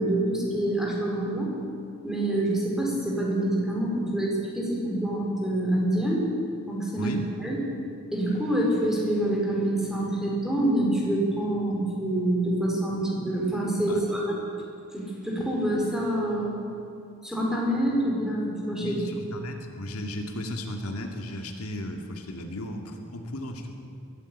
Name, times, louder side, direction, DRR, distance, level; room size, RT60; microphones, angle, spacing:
voice 1, 0.0-1.5 2.0-6.2 6.7-7.6 8.1-14.4 14.9-16.5 17.2-19.0, right 1 dB, ahead, -3 dB, 4.8 m, -26 dB
voice 2, 18.8-23.8, left 1 dB, 75° left, 3 dB, 2.2 m, -35 dB
21.5 x 14.5 x 8.7 m, 2.6 s
head